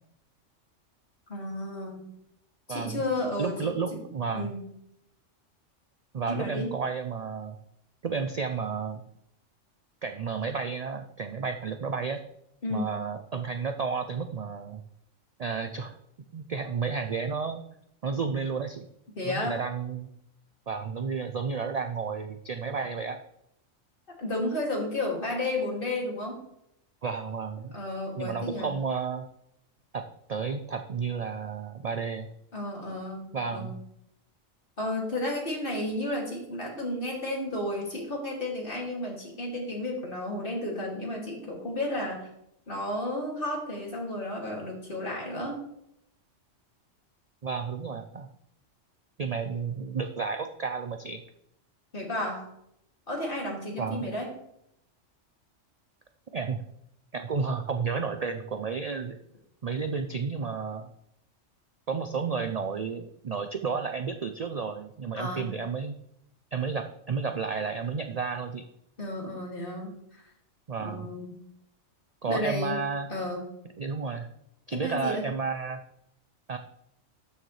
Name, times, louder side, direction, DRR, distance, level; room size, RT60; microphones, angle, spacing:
voice 1, 1.3-2.1 2.7-4.0 4.3-4.6 6.3-6.7 12.6-12.9 19.2-19.6 24.2-26.4 27.7-28.7 32.5-33.8 34.8-42.3 42.7-45.6 51.9-52.5 53.1-54.3 65.2-65.5 69.0-70.2 70.8-71.3 72.3-72.8 73.1-73.5 74.7-75.3, left 1 dB, 45° left, -2 dB, 2.6 m, -32 dB
voice 2, 2.7-3.0 3.4-4.5 6.1-7.6 8.0-9.0 10.0-12.2 12.7-14.8 15.4-15.9 16.3-17.6 18.0-18.9 19.2-20.1 20.7-23.2 27.0-27.8 28.2-29.3 29.9-30.0 30.3-32.3 33.3-33.7 47.4-48.3 49.2-51.2 53.8-54.1 56.3-56.6 57.1-59.2 59.6-60.9 61.9-65.9 66.5-68.6 70.7-71.1 72.2-73.1 73.8-74.3 74.7-75.8 76.5-76.6, right 5 dB, 55° right, 7 dB, 0.4 m, -32 dB
12.5 x 6.5 x 3.2 m, 0.77 s
omnidirectional pair, 1.3 m